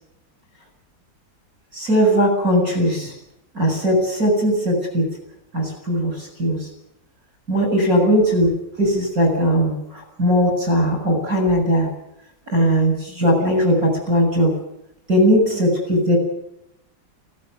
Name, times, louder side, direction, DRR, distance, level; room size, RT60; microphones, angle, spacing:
voice 1, 1.7-3.1 3.5-5.1 5.5-6.7 7.5-8.5 8.8-11.9 12.5-14.5 15.1-16.2, equal, 45° right, 2 dB, 7.7 m, -19 dB
19.5 x 17.5 x 9.4 m, 0.80 s
omnidirectional pair, 2.0 m